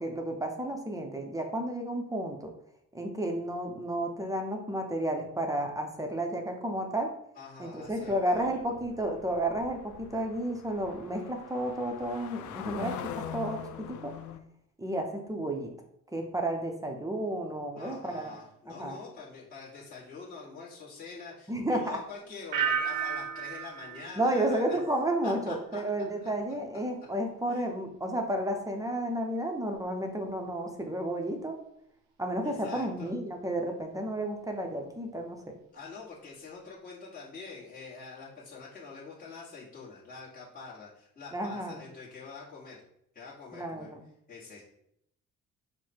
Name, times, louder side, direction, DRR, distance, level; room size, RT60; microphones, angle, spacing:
voice 1, 0.0-2.5 2.9-7.1 7.6-13.0 13.3-14.1 14.8-15.7 16.1-18.4 18.7-19.0 21.5-22.0 24.1-31.6 32.2-35.4 41.3-41.8 43.5-44.0, right 1 dB, 10° right, 3 dB, 0.7 m, -32 dB
voice 2, 7.3-8.6 17.7-24.8 25.2-25.8 26.2-26.3 27.5-27.6 32.4-33.1 35.7-42.8 43.1-43.9 44.3-44.6, left 4 dB, 25° left, -8 dB, 1.5 m, -45 dB
sound 1, 7.9-14.4, left 9 dB, 75° left, 0.5 m, -43 dB
sound 2, 22.5-25.4 25.7-26.2, right 8 dB, 80° right, 0.6 m, -34 dB
4.6 x 2.2 x 4.4 m, 0.74 s
cardioid pair, 90°, 30 cm